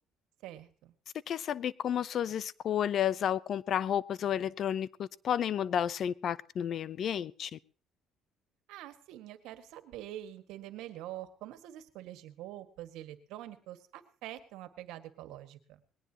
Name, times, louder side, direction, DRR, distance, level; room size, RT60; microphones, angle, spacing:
voice 1, 0.4-0.9 8.7-15.8, right 13 dB, 85° right, 1.8 m, -45 dB
voice 2, 1.3-7.6, left 9 dB, 55° left, 0.7 m, -31 dB
20.5 x 18.0 x 3.0 m
cardioid pair, 110°, 0 cm